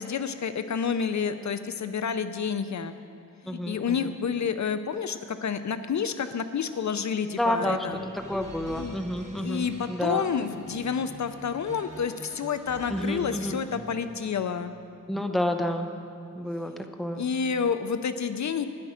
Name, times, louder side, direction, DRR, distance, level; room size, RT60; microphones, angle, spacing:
voice 1, 0.0-2.9 3.4-8.0 8.8-9.0 9.4-14.7 17.1-18.6, left 6 dB, 60° left, 10 dB, 0.5 m, -29 dB
voice 2, 3.5-4.1 7.4-7.9 8.1-10.3 12.9-13.6 15.1-15.9 16.3-16.7 17.0-17.2, equal, ahead, 5 dB, 0.7 m, -29 dB
sound 1, 7.7-14.4, right 1 dB, 20° right, 1.7 m, -45 dB
13.0 x 9.9 x 5.0 m, 2.5 s
wide cardioid pair, 130°, 32 cm